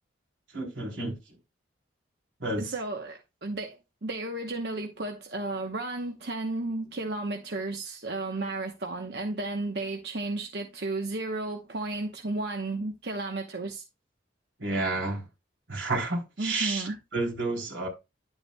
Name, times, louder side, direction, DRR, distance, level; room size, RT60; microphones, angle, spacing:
voice 1, 0.5-1.1 2.4-2.7 14.6-15.2 15.7-17.9, right 2 dB, 85° right, 3.6 m, -30 dB
voice 2, 2.6-13.8 16.4-17.0, right 2 dB, 55° right, 0.9 m, -33 dB
11.0 x 8.1 x 2.2 m
head